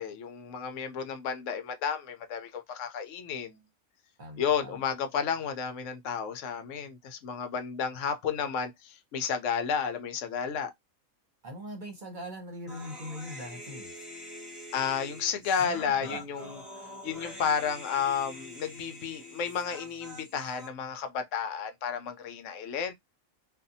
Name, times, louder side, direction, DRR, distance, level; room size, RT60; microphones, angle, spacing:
voice 1, 0.0-3.6 4.4-10.7 14.7-16.6 17.0-22.9, left 7 dB, 70° left, 0.9 m, -32 dB
voice 2, 4.2-4.7 11.4-13.9 15.6-16.2, equal, 40° right, 0.9 m, -41 dB
Human voice, 12.7-20.7, left 1 dB, ahead, 1.3 m, -45 dB
2.6 x 2.3 x 2.6 m
omnidirectional pair, 1.4 m